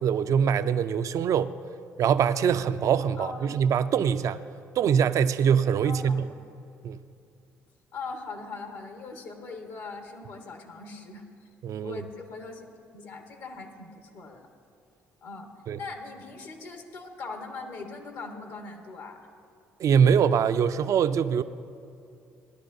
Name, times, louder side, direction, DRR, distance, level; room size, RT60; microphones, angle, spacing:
voice 1, 0.0-1.5 2.0-4.4 4.8-6.2 6.8-7.0 11.6-12.0 15.7-15.8 19.8-21.4, right 7 dB, 55° right, 13 dB, 0.4 m, -23 dB
voice 2, 3.1-3.6 5.8-6.2 7.9-11.2 11.8-12.7 12.9-14.5 15.2-19.3, left 4 dB, 75° left, 3 dB, 1.3 m, -40 dB
18.0 x 11.0 x 2.7 m, 2.5 s
hypercardioid pair, 55°, 7 cm